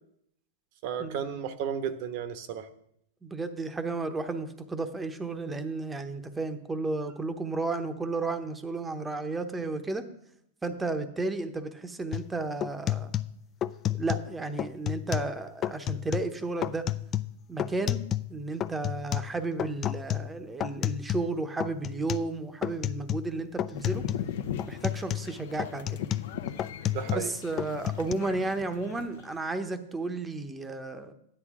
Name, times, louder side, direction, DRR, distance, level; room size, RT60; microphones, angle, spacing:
voice 1, 0.8-2.7 26.9-27.3, right 8 dB, 50° right, 11 dB, 1.0 m, -33 dB
voice 2, 3.2-10.0 10.6-13.1 14.0-16.8 17.5-18.0 18.3-24.0 24.7-26.0 27.1-31.1, right 3 dB, 10° right, 8 dB, 0.9 m, -33 dB
sound 1, 12.1-12.3 12.6-14.3 14.6-15.3 15.6-16.3 16.6-18.3 18.6-21.3 21.6-22.3 22.6-23.3 23.6-24.3 24.6-27.3 27.6-28.1, left 12 dB, 25° left, 0.3 m, -31 dB
sound 2, 23.7-29.4, left 9 dB, 70° left, 0.8 m, -39 dB
13.0 x 10.0 x 3.7 m, 0.74 s
hypercardioid pair, 140°, 0 cm